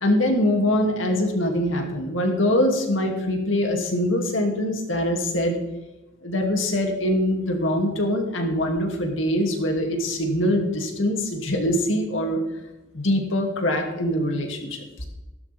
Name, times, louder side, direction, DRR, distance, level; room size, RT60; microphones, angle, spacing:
voice 1, 0.0-5.6 6.2-12.4 12.9-15.0, left 1 dB, 80° left, 2 dB, 2.7 m, -23 dB
16.5 x 12.5 x 3.6 m, 0.98 s
head